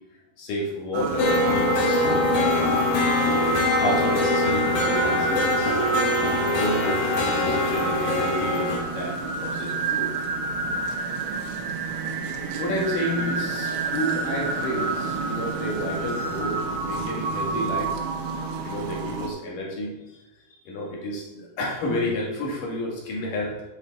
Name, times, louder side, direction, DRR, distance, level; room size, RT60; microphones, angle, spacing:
voice 1, 0.4-2.9 3.8-5.8 6.4-10.2 12.6-18.1 18.6-20.2 20.6-23.6, left 1 dB, 70° left, -2 dB, 3.4 m, -30 dB
sound 1, 0.9-19.3, right 4 dB, 80° right, 1.2 m, -29 dB
sound 2, 1.2-8.8, left 2 dB, 55° left, 2.2 m, -23 dB
8.3 x 7.3 x 4.1 m, 1.1 s
omnidirectional pair, 3.9 m